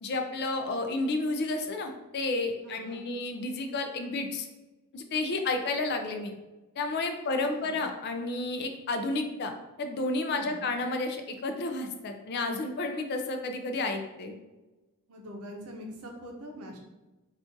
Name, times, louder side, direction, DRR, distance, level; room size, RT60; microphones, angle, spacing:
voice 1, 0.0-4.5 4.9-6.3 6.8-9.5 9.8-14.4, left 2 dB, 45° left, 5 dB, 0.4 m, -31 dB
voice 2, 2.6-3.1 7.5-7.9 10.3-10.7 15.1-16.8, equal, 80° right, 2 dB, 0.6 m, -44 dB
2.5 x 2.4 x 3.7 m, 1.1 s
head